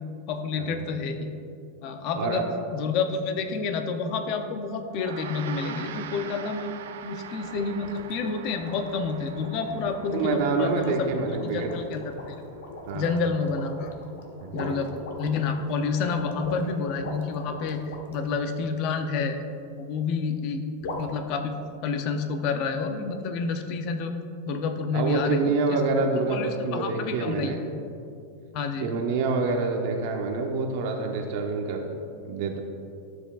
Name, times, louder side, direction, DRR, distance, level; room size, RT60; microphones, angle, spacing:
voice 1, 0.3-1.3 1.8-2.4 2.7-6.7 7.0-11.1 11.4-12.4 12.9-13.9 14.5-19.4 19.8-20.6 21.0-21.5 21.8-24.1 24.5-25.8 26.3-27.5 28.5-28.9, left 4 dB, 35° left, 6 dB, 0.5 m, -29 dB
Gong, 4.9-14.4, right 8 dB, 85° right, 0.6 m, -44 dB
sound 1, 7.4-18.4 20.8-21.1, left 2 dB, 75° left, 1.1 m, -41 dB
voice 2, 10.1-11.7 12.9-13.2 14.4-14.9 24.9-27.6 28.8-31.9 32.2-32.6, right 4 dB, 45° right, 3 dB, 0.8 m, -27 dB
12.5 x 7.9 x 2.4 m, 2.6 s
supercardioid pair, 175°, 0 cm